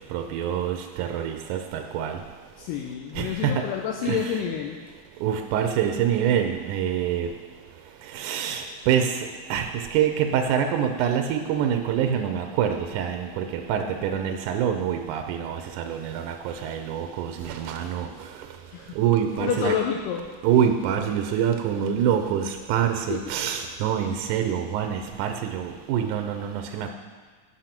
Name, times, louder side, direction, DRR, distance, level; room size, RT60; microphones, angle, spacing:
voice 1, 0.1-2.2 3.2-3.7 4.1-4.3 5.2-7.3 8.1-9.1 9.5-18.1 19.0-19.7 20.4-26.9, right 8 dB, 80° right, 5 dB, 1.9 m, -25 dB
voice 2, 2.6-4.8 18.7-19.0 19.4-20.2 23.1-23.2, left 8 dB, 80° left, 0 dB, 2.3 m, -28 dB
9.0 x 6.3 x 5.9 m, 1.5 s
omnidirectional pair, 4.0 m